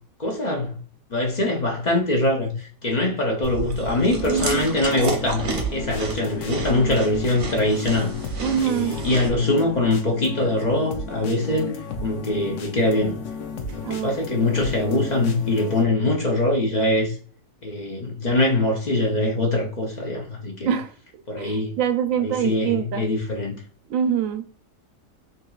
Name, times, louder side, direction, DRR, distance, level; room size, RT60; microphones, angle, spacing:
voice 1, 0.2-0.8 1.1-8.1 8.6-11.7 12.0-13.2 13.6-17.1 17.6-20.7 21.3-21.7 22.2-23.5, left 2 dB, 40° left, 0.6 m, -23 dB
Chewing mastication, 3.4-9.3, right 3 dB, 45° right, 0.8 m, -32 dB
sound 1, 4.1-15.8, left 4 dB, 65° left, 0.9 m, -34 dB
voice 2, 4.3-4.8 8.4-9.0 13.8-14.2 20.6-20.9 21.4-23.0 23.9-24.4, right 8 dB, 75° right, 0.9 m, -24 dB
3.8 x 2.9 x 2.3 m
omnidirectional pair, 1.4 m